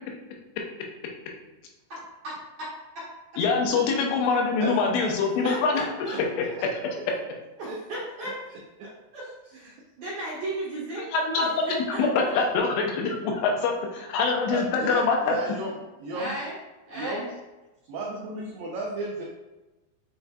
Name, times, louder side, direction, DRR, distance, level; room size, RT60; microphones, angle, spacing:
voice 1, 1.9-2.3 2.6-2.7 2.9-3.0 5.4-6.2 7.6-8.4 9.1-12.4 16.1-16.6 16.8-17.3, right 1 dB, 65° right, -9 dB, 1.9 m, -35 dB
voice 2, 3.4-5.8 6.1-6.2 11.1-15.4, left 4 dB, 90° left, 1 dB, 2.9 m, -24 dB
voice 3, 14.5-15.7 16.0-16.3 16.9-17.3 17.9-19.2, right 2 dB, 85° right, -3 dB, 1.9 m, -33 dB
7.7 x 2.7 x 2.3 m, 1.1 s
omnidirectional pair, 4.7 m